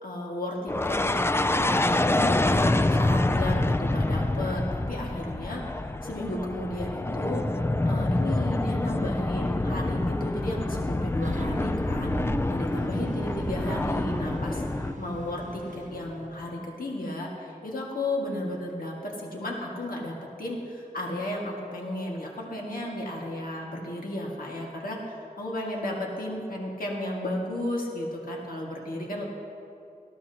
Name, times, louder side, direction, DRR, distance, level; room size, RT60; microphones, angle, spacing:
voice 1, 0.0-5.6 6.0-7.4 7.9-29.2, left 1 dB, 70° left, -2 dB, 1.9 m, -34 dB
sound 1, 0.7-14.9, left 2 dB, 15° left, 0.4 m, -26 dB
sound 2, 11.2-16.6, right 2 dB, 60° right, 1.1 m, -38 dB
18.5 x 13.5 x 2.9 m, 2.6 s
wide cardioid pair, 65°, 15 cm